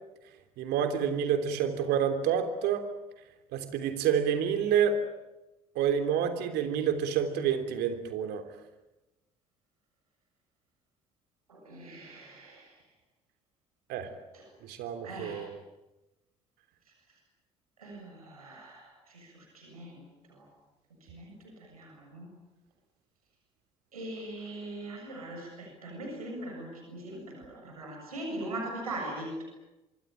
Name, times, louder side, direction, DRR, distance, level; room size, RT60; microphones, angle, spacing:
voice 1, 0.6-2.9 3.5-5.0 5.7-8.4 13.9-14.1 14.6-15.6, right 8 dB, 65° right, 8 dB, 3.4 m, -28 dB
voice 2, 11.5-12.7 14.3-14.4 15.0-15.5 17.8-20.0 20.3-20.5 21.0-22.3 23.9-29.4, right 1 dB, 90° right, 1 dB, 7.4 m, -41 dB
25.5 x 23.0 x 9.2 m, 0.99 s
hypercardioid pair, 55°, 18 cm